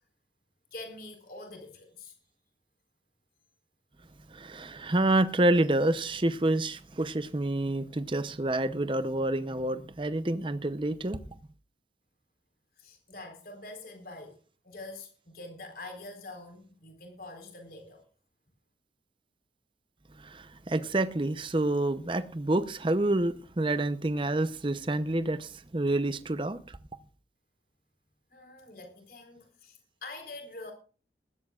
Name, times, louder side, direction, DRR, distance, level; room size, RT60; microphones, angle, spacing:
voice 1, 0.7-2.1 12.8-14.4 14.6-18.0 28.3-30.7, left 2 dB, 55° left, 4.1 m, -45 dB
voice 2, 4.3-11.2 20.2-26.8, right 1 dB, 30° right, 0.7 m, -28 dB
20.0 x 15.5 x 2.4 m
head